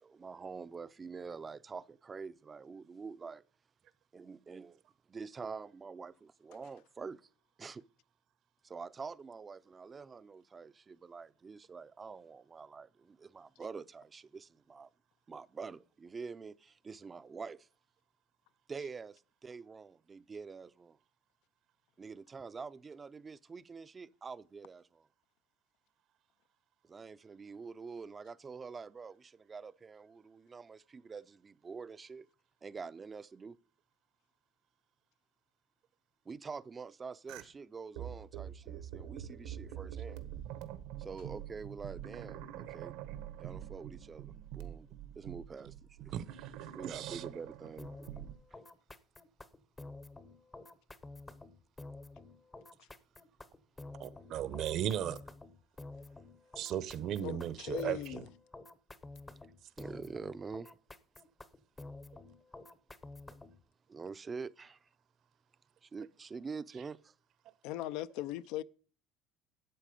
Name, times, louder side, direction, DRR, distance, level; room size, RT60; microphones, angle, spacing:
voice 1, 0.0-3.4 4.1-4.8 5.1-7.3 7.6-7.8 8.6-14.9 15.3-17.7 18.7-21.0 22.0-25.1 26.8-32.3 32.6-33.6 36.3-40.2 41.0-42.9 43.4-44.9 45.2-46.1 46.7-48.1 48.5-48.6 59.8-60.7 63.9-64.9 65.8-67.1, right 5 dB, 20° right, 0.5 m, -46 dB
sound 1, 37.3-37.4 38.0-48.3, right 11 dB, 85° right, 1.4 m, -45 dB
voice 2, 46.1-47.2 54.0-55.2 56.6-58.2, right 10 dB, 50° right, 0.8 m, -37 dB
sound 2, 47.8-63.6, left 2 dB, 15° left, 0.7 m, -50 dB
voice 3, 57.2-58.3 67.6-68.6, left 14 dB, 70° left, 0.5 m, -39 dB
12.5 x 8.3 x 5.1 m
cardioid pair, 130°, 0 cm